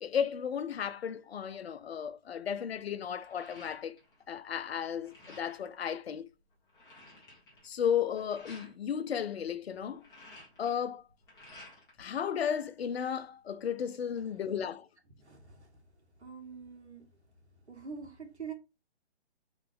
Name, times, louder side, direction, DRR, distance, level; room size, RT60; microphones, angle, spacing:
voice 1, 0.0-4.0 4.3-6.3 7.6-10.0 10.6-11.0 12.0-14.9, left 8 dB, 65° left, 0.6 m, -34 dB
sound 1, 2.1-2.2 2.5-4.3 4.5-5.7 6.2-6.3 6.5-8.7 9.8-12.0 12.4-13.2, left 1 dB, 10° left, 1.5 m, -54 dB
voice 2, 15.2-15.8 16.2-17.1 17.7-18.5, right 6 dB, 90° right, 1.6 m, -45 dB
3.8 x 3.7 x 3.6 m
hypercardioid pair, 150°, 33 cm